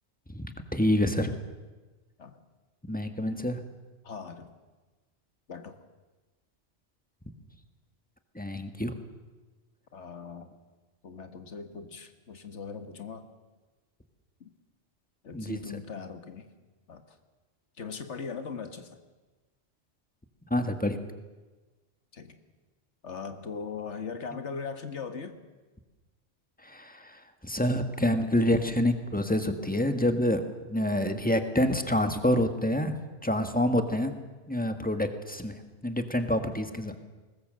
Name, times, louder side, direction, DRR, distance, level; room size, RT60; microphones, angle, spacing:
voice 1, 0.3-1.3 2.9-3.6 8.3-8.9 15.3-15.6 20.5-21.0 26.6-27.1 27.4-34.1 34.5-35.5 35.8-36.9, left 1 dB, 10° left, 7 dB, 1.6 m, -27 dB
voice 2, 4.0-4.5 5.5-5.8 9.9-10.5 11.0-13.3 14.4-14.5 15.2-16.5 16.9-17.2 17.8-19.0 22.1-22.4 23.0-25.4, left 5 dB, 85° left, 8 dB, 1.8 m, -39 dB
21.5 x 19.5 x 7.7 m, 1.3 s
omnidirectional pair, 1.2 m